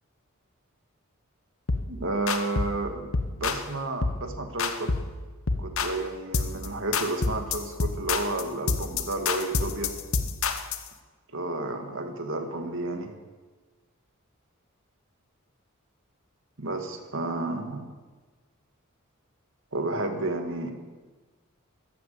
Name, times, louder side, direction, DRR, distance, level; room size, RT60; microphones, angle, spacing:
sound 1, 1.7-1.9 2.3-2.8 3.1-3.7 4.0-4.3 4.6-5.1 5.5-6.0 6.3-6.7 6.9-10.9, left 4 dB, 65° left, 1.0 m, -28 dB
voice 1, 1.9-3.1 3.4-4.9 5.6-9.9 11.3-13.1 16.6-17.9 19.7-20.7, right 2 dB, 60° right, 5 dB, 2.0 m, -31 dB
13.5 x 11.0 x 7.8 m, 1.3 s
head